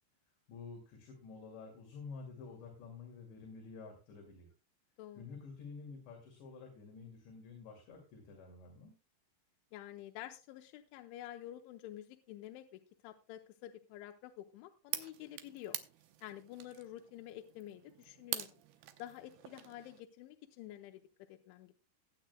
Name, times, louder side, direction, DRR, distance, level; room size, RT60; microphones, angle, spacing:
voice 1, 0.5-4.5 5.2-8.9, left 4 dB, 70° left, 0 dB, 4.5 m, -50 dB
voice 2, 9.7-15.8 16.2-18.5 19.0-21.0 21.3-21.7, left 13 dB, 85° left, 5 dB, 3.1 m, -49 dB
sound 1, 14.9-20.0, right 13 dB, 75° right, 2.4 m, -45 dB
19.0 x 8.9 x 2.2 m, 0.31 s
omnidirectional pair, 5.5 m